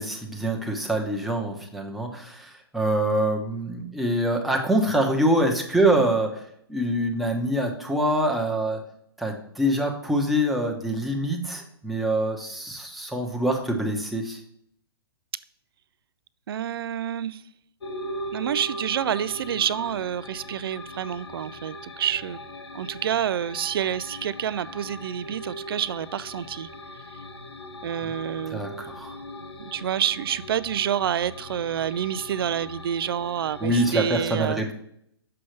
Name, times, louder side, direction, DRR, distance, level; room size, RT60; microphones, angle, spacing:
voice 1, 0.0-6.4 6.7-8.8 9.2-14.4 28.0-28.1 28.5-29.1 33.6-34.7, right 1 dB, ahead, 0 dB, 1.0 m, -25 dB
voice 2, 16.5-17.4 18.3-22.4 22.7-26.7 27.8-28.6 29.6-34.6, right 9 dB, 65° right, 18 dB, 0.4 m, -28 dB
sound 1, 17.8-33.9, left 1 dB, 85° left, 1.0 m, -40 dB
6.7 x 5.4 x 3.2 m, 0.72 s
hypercardioid pair, 130°, 13 cm